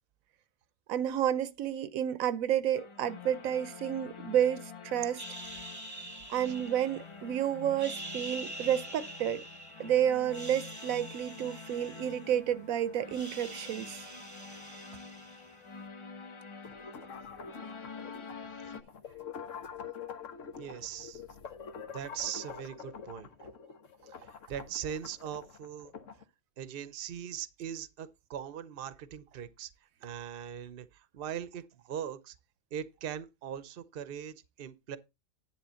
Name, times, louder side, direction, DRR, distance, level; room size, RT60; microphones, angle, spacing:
voice 1, 0.9-5.2 6.3-9.4 9.8-14.0, right 10 dB, 85° right, 1.1 m, -30 dB
sound 1, 2.7-18.8, left 5 dB, 35° left, 0.5 m, -47 dB
sound 2, 5.2-7.3 7.7-9.9 10.2-12.6 12.9-15.8, right 1 dB, 15° right, 1.1 m, -45 dB
sound 3, 16.6-26.2, left 6 dB, 70° left, 1.4 m, -46 dB
voice 2, 20.6-21.2 21.9-23.3 24.3-25.9 26.6-29.7 30.0-30.9 31.1-32.3 32.7-35.0, right 9 dB, 50° right, 0.9 m, -40 dB
10.5 x 3.7 x 6.9 m
omnidirectional pair, 1.4 m